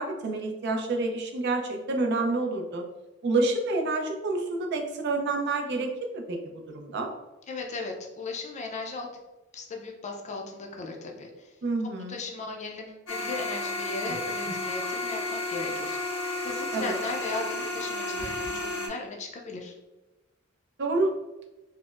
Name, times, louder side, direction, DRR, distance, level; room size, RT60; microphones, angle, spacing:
voice 1, 0.0-2.8 3.2-5.9 6.1-6.4 6.7-7.1 11.6-12.2 16.7-16.9 20.8-21.1, right 2 dB, 55° right, 3 dB, 0.5 m, -28 dB
voice 2, 7.5-9.1 9.5-11.5 12.1-16.0 16.4-19.7, left 3 dB, 35° left, 2 dB, 0.4 m, -37 dB
sound 1, 13.1-18.9, left 2 dB, 90° left, 1.0 m, -32 dB
4.2 x 2.0 x 2.4 m, 1.1 s
head